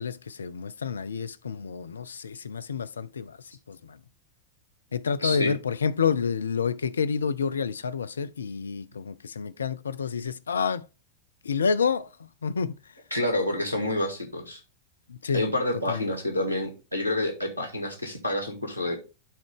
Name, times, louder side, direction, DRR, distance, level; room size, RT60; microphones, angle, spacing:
voice 1, 0.0-3.4 3.7-4.0 4.9-10.9 11.4-12.1 12.4-12.8 15.1-15.4 15.9-16.1, left 6 dB, 70° left, 0.4 m, -29 dB
voice 2, 5.2-5.5 13.1-14.6 15.3-19.0, left 1 dB, 90° right, 1.9 m, -28 dB
11.5 x 3.9 x 3.5 m
figure-of-eight pair, 90°, 0 cm